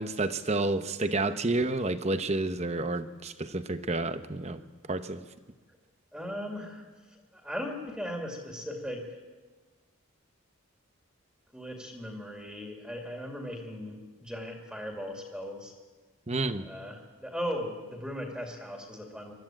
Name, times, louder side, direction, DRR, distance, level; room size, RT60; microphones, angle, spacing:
voice 1, 0.0-4.6 4.9-5.2 16.3-16.6, right 2 dB, 30° right, 10 dB, 0.9 m, -30 dB
voice 2, 6.1-9.2 11.5-15.7 16.6-19.3, equal, 5° right, 1 dB, 2.4 m, -38 dB
22.5 x 13.5 x 8.9 m, 1.4 s
head